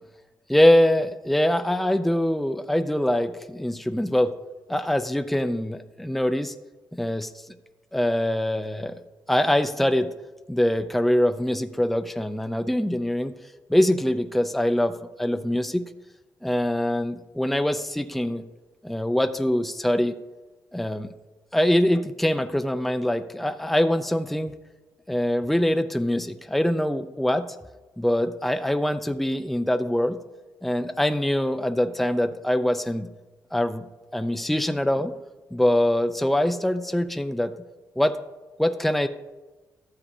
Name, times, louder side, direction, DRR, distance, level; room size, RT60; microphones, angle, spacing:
voice 1, 0.5-4.3 4.7-6.5 6.9-7.3 7.9-8.9 9.3-10.1 10.5-13.3 13.7-15.9 16.4-18.4 18.8-20.1 20.7-21.1 21.5-24.5 25.1-27.5 28.0-30.2 30.6-33.1 33.5-33.8 34.1-35.1 35.5-37.5 38.0-38.2 38.6-39.1, left 1 dB, ahead, 9 dB, 0.5 m, -23 dB
12.5 x 8.3 x 2.7 m, 1.2 s
cardioid pair, 80°, 7 cm